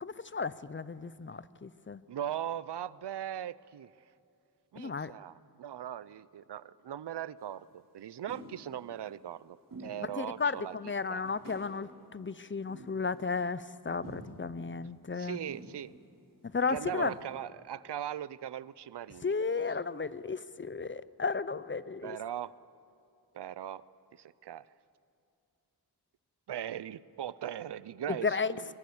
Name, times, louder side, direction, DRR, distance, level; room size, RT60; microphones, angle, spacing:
voice 1, 0.0-2.0 4.8-5.1 10.0-15.4 16.5-17.2 19.2-22.2 28.1-28.5, left 4 dB, 30° left, 17 dB, 0.6 m, -34 dB
voice 2, 2.1-3.9 4.7-10.7 11.1-11.2 15.2-15.9 16.7-19.3 22.0-22.5 23.3-23.8 24.4-24.6 26.5-28.6, right 10 dB, 85° right, 19 dB, 0.6 m, -39 dB
sound 1, 7.4-7.5 8.3-8.7 9.7-10.1 10.5-10.6 11.2-11.8 12.7-13.3 14.0-14.5 15.5-15.9 16.5-16.6 16.9-17.3, right 2 dB, 55° right, 4.3 m, -48 dB
22.5 x 21.5 x 7.1 m, 2.5 s
wide cardioid pair, 70°, 40 cm